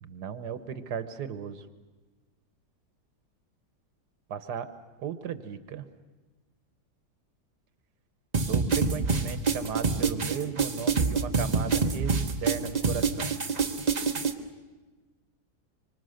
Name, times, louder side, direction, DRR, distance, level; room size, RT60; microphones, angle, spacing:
voice 1, 0.0-1.6 4.3-4.7 5.0-5.9 8.5-12.1 12.4-13.4, right 8 dB, 75° right, 11 dB, 1.6 m, -36 dB
sound 1, 8.3-14.3, right 4 dB, 30° right, 0.9 m, -26 dB
25.5 x 24.5 x 6.4 m, 1.2 s
omnidirectional pair, 1.8 m